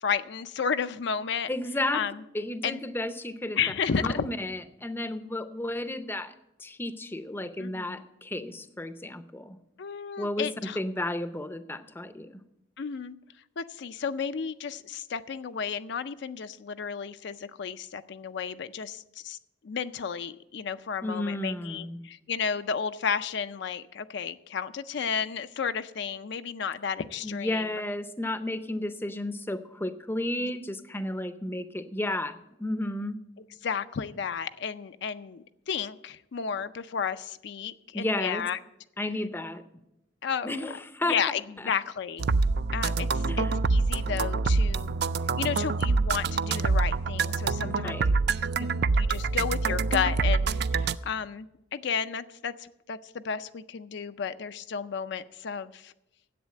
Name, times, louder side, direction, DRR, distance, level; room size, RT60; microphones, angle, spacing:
voice 1, 0.0-1.5 1.9-2.2 2.6-2.8 3.6-4.3 7.6-8.0 9.8-10.8 12.8-13.1 13.6-19.4 19.6-27.7 33.6-38.6 40.2-40.6 41.1-42.3 42.7-45.0 45.4-48.0 48.6-55.9, left 6 dB, 60° left, 10 dB, 0.4 m, -32 dB
voice 2, 1.5-2.0 2.3-3.6 3.9-6.3 6.6-9.6 10.2-12.4 21.0-22.0 27.2-33.2 37.9-38.4 39.0-39.6 40.4-41.2 41.6-41.7 43.3-43.6 47.6-48.1, left 1 dB, 10° left, 10 dB, 0.5 m, -33 dB
sound 1, 42.2-51.0, right 4 dB, 55° right, 0.4 m, -26 dB
10.5 x 8.1 x 7.5 m, 0.87 s
head